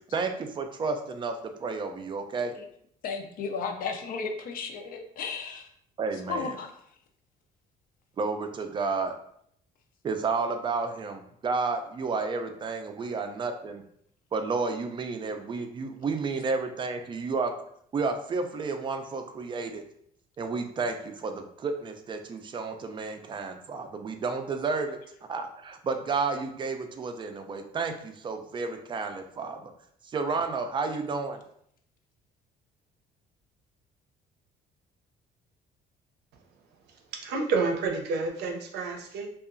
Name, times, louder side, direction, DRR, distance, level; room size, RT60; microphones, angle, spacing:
voice 1, 0.1-2.5 6.0-6.5 8.2-9.1 10.0-13.8 14.3-17.5 17.9-19.8 20.4-25.0 25.3-29.6 30.1-31.4, right 4 dB, 30° right, 6 dB, 0.3 m, -31 dB
voice 2, 3.0-5.7 6.1-6.7, left 5 dB, 55° left, 5 dB, 0.5 m, -34 dB
voice 3, 36.9-39.3, right 4 dB, 75° right, 3 dB, 0.6 m, -30 dB
2.8 x 2.3 x 2.5 m, 0.68 s
cardioid pair, 110°, 17 cm